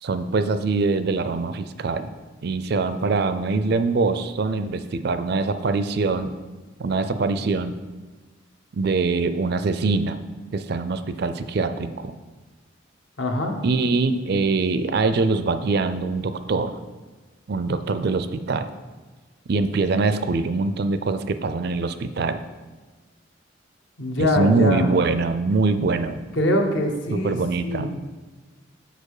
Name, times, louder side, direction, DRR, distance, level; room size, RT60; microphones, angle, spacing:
voice 1, 0.0-2.1 2.4-6.3 6.8-7.7 8.7-10.2 10.5-12.1 13.6-16.8 17.5-18.7 19.5-22.4 24.2-26.2 27.1-27.9, right 3 dB, 55° right, 10 dB, 0.4 m, -23 dB
voice 2, 13.2-13.6 24.0-24.9 26.4-28.0, left 1 dB, 65° left, 3 dB, 0.9 m, -23 dB
6.6 x 5.0 x 4.8 m, 1.3 s
head